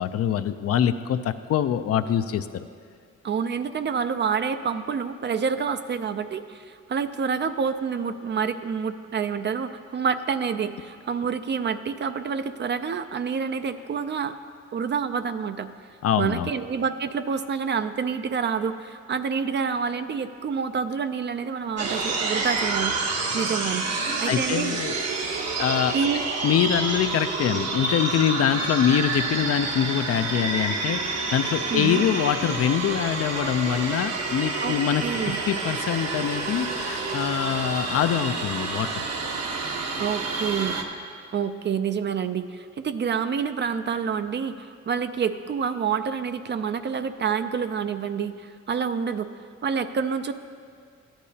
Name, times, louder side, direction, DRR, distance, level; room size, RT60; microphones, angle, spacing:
voice 1, 0.0-2.6 16.0-16.5 23.9-25.1 25.6-25.9 26.4-39.1, left 9 dB, 50° left, 10 dB, 0.5 m, -24 dB
voice 2, 3.2-14.3 14.7-15.7 16.2-23.8 24.2-24.8 25.9-26.2 31.7-32.1 34.6-34.7 35.0-35.4 39.9-40.8 41.3-49.3 49.6-50.3, right 6 dB, 35° right, 10 dB, 0.4 m, -28 dB
sound 1, 21.8-40.8, right 3 dB, 60° right, 1.1 m, -28 dB
13.5 x 10.0 x 2.8 m, 2.1 s
cardioid pair, 90°, 30 cm